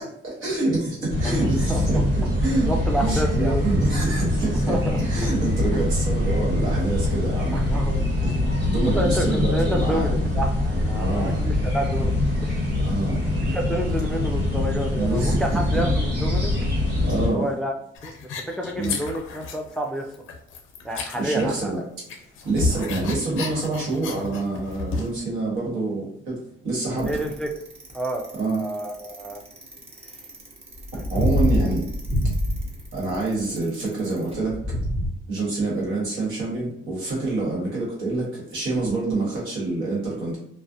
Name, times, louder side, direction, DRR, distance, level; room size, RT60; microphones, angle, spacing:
voice 1, 0.2-2.7 3.0-7.6 8.2-8.4 8.7-10.1 11.0-11.4 12.8-13.2 15.0-15.8 17.0-17.5 18.8-19.0 21.2-21.8 22.4-26.4 26.6-27.1 28.3-28.6 30.9-31.9 32.9-34.8 35.3-40.4, right 2 dB, 80° right, -4 dB, 1.2 m, -26 dB
sound 1, 1.1-17.3, left 1 dB, 55° right, 1.3 m, -24 dB
voice 2, 1.2-2.0 2.7-3.6 4.7-5.3 5.7-5.9 7.5-8.1 8.8-12.1 12.4-12.6 13.5-16.5 17.3-17.7 18.0-18.1 18.5-20.1 20.8-21.8 27.0-27.5 27.9-28.2 28.5-29.4 30.9-31.0 31.6-31.7, equal, 5° left, 1 dB, 0.3 m, -29 dB
sound 2, 18.0-19.8 20.1-21.8 22.1-25.2, left 3 dB, 90° left, 0.5 m, -31 dB
Bicycle, 27.0-35.1, equal, 30° right, 0.8 m, -26 dB
2.4 x 2.0 x 2.5 m, 0.72 s
cardioid pair, 90°, 20 cm